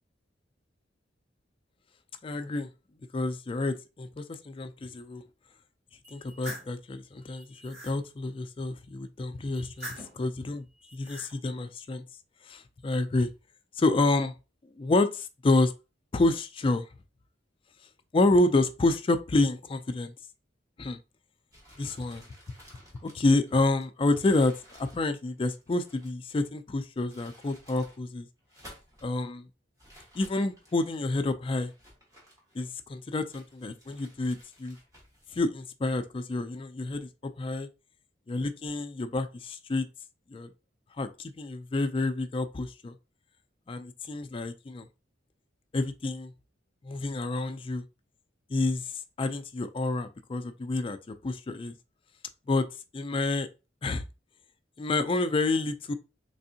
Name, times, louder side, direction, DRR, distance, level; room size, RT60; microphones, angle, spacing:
voice 1, 2.2-2.7 3.1-5.2 6.1-10.7 10.9-12.0 12.4-13.3 13.8-14.3 14.8-15.7 16.1-16.9 18.1-20.1 20.8-21.0 21.8-22.2 23.0-28.3 29.0-29.5 30.1-31.7 32.5-34.8 35.3-37.7 38.3-39.9 40.3-40.5 41.0-43.0 43.7-44.9 45.7-46.3 46.8-47.8 48.5-51.7 52.5-52.7 52.9-53.5 53.8-54.0 54.8-55.9, left 2 dB, 30° left, 0.3 m, -28 dB
sound 1, 6.0-6.7 7.3-8.0 9.5-10.2 10.8-11.3, equal, 65° right, 2.2 m, -43 dB
sound 2, 21.5-26.3 26.9-28.0 28.4-29.1 29.8-31.0 31.6-32.9 33.3-35.3, equal, 20° right, 1.3 m, -55 dB
3.5 x 3.3 x 2.7 m
head